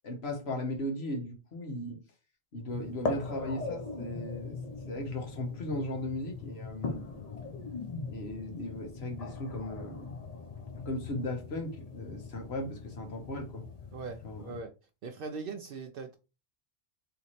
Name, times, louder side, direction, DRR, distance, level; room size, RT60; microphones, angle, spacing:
voice 1, 0.0-2.0 2.5-4.6 4.9-7.2 8.1-10.1 10.8-13.6 14.2-14.5, left 1 dB, 85° left, 1.4 m, -37 dB
sound 1, 2.7-14.6, left 3 dB, 40° left, 0.7 m, -40 dB
voice 2, 13.9-14.7 15.0-16.2, right 4 dB, 65° right, 0.7 m, -40 dB
3.4 x 3.1 x 4.1 m
omnidirectional pair, 1.0 m